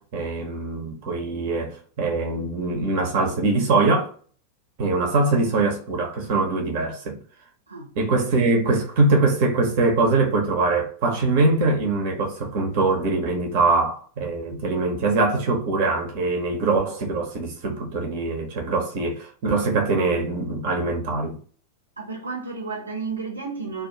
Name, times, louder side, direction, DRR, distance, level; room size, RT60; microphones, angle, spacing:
voice 1, 0.0-4.1 4.8-7.2 8.0-21.4, right 3 dB, 45° right, 0.7 m, -23 dB
voice 2, 22.0-23.9, right 4 dB, 80° right, 0.7 m, -32 dB
2.5 x 2.3 x 3.7 m
figure-of-eight pair, 90°, 0 cm